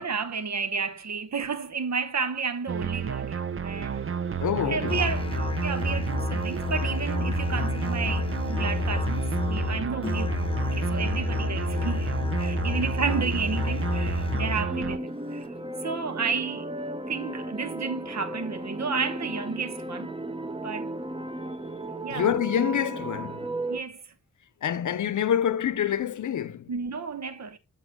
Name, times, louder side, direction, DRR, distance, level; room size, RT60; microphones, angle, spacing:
voice 1, 0.0-4.2 4.7-15.5 15.8-16.7 17.1-20.1 20.6-20.9 22.0-22.3 23.7-24.0 26.7-27.6, right 5 dB, 65° right, 1.0 m, -32 dB
sound 1, 2.7-15.0, right 7 dB, 45° right, 0.7 m, -32 dB
voice 2, 4.4-5.0 22.1-23.5 24.6-26.7, left 9 dB, 75° left, 0.7 m, -26 dB
Musical instrument, 4.9-14.8, left 3 dB, 20° left, 0.7 m, -29 dB
sound 2, 14.7-23.8, right 1 dB, 20° right, 1.0 m, -35 dB
7.4 x 7.2 x 2.2 m
cardioid pair, 50°, 30 cm